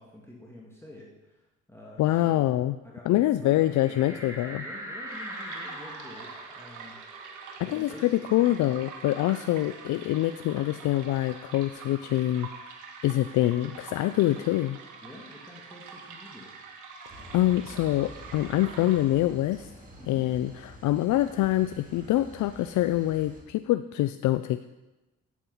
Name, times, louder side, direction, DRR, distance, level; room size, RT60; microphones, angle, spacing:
voice 1, 0.0-2.5 2.8-7.0 7.6-8.4 15.0-16.5 20.0-20.3, left 1 dB, 10° left, -3 dB, 2.0 m, -48 dB
voice 2, 2.0-2.8 3.1-4.6 7.6-12.5 13.0-14.8 17.1-19.7 20.1-24.7, left 14 dB, 75° left, 12 dB, 0.4 m, -25 dB
sound 1, 3.6-8.8 9.2-9.3 9.6-11.3, equal, 10° right, 3.2 m, -43 dB
sound 2, 5.1-19.4, right 5 dB, 90° right, 1.4 m, -45 dB
sound 3, 17.1-23.4, equal, 25° right, 2.6 m, -48 dB
8.8 x 8.5 x 5.5 m, 1.0 s
cardioid pair, 90°, 30 cm